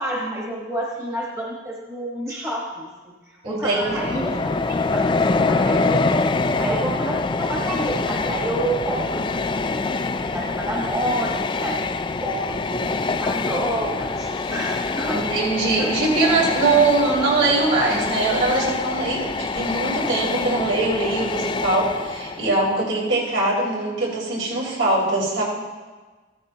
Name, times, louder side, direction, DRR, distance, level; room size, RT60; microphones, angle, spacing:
voice 1, 0.0-6.0 6.4-9.8 10.3-11.8 12.2-15.3 15.8-15.9, right 1 dB, 15° right, -4 dB, 1.2 m, -29 dB
voice 2, 3.4-4.3 15.1-25.4, right 2 dB, 70° right, -5 dB, 4.3 m, -22 dB
Train, 3.7-22.6, left 3 dB, 25° left, 0.3 m, -25 dB
15.0 x 13.5 x 2.8 m, 1.3 s
head